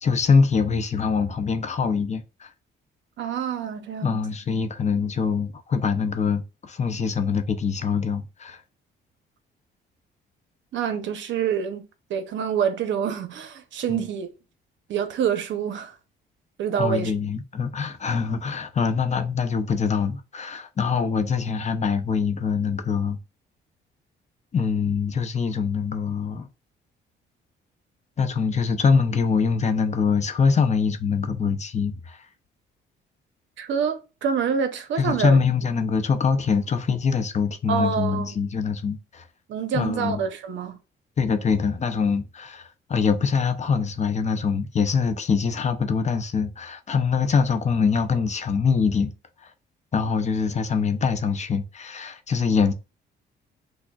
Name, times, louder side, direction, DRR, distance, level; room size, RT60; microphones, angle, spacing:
voice 1, 0.0-2.5 4.0-8.6 13.9-14.0 16.8-23.2 24.5-26.5 28.2-32.2 35.0-39.2 39.7-40.2 41.2-49.1 49.9-52.7, left 5 dB, 35° left, 0.5 m, -24 dB
voice 2, 3.2-4.2 10.7-11.8 12.1-14.3 14.9-15.9 16.6-17.1 33.6-35.4 37.7-38.3 39.5-40.8, right 7 dB, 70° right, 0.7 m, -26 dB
5.9 x 2.1 x 2.3 m
cardioid pair, 90°, 20 cm